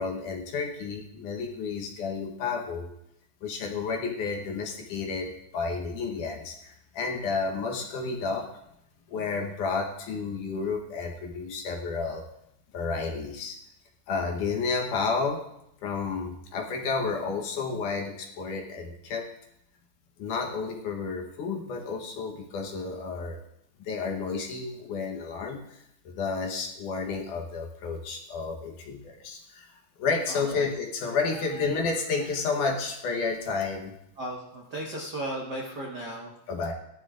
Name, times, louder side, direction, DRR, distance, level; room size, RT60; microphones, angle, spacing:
voice 1, 0.0-2.9 3.4-8.5 9.1-12.3 12.7-13.6 14.1-15.4 15.8-19.3 20.2-23.4 23.8-33.9 36.5-36.7, left 4 dB, 65° left, 1 dB, 2.3 m, -31 dB
voice 2, 30.3-30.7 31.5-31.8 34.2-36.3, right 1 dB, 70° right, -2 dB, 0.9 m, -36 dB
18.0 x 12.0 x 2.5 m, 0.80 s
omnidirectional pair, 4.4 m